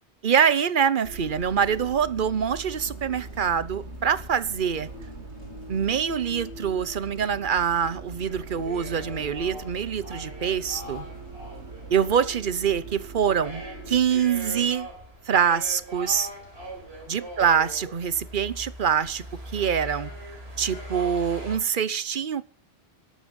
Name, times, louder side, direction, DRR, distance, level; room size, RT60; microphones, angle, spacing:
voice 1, 0.2-4.9 5.7-11.1 11.9-14.9 15.3-16.3 17.1-19.2 19.5-20.1 20.6-22.4, right 7 dB, 50° right, 1.0 m, -25 dB
Bus, 1.0-14.0, right 3 dB, 85° right, 3.4 m, -41 dB
sound 1, 8.3-21.6, right 1 dB, 65° right, 4.8 m, -41 dB
13.5 x 11.5 x 5.4 m
omnidirectional pair, 1.1 m